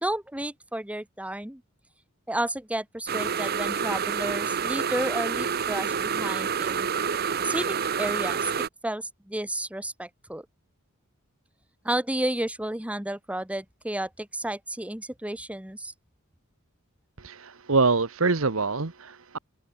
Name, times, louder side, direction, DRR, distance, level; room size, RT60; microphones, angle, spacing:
voice 1, 0.0-1.6 2.3-6.9 7.4-10.5 11.8-15.9, right 1 dB, 5° right, 1.0 m, -32 dB
sound 1, 3.1-8.7, right 6 dB, 50° right, 0.9 m, -28 dB
voice 2, 17.2-19.4, right 4 dB, 70° right, 1.2 m, -25 dB
open air
head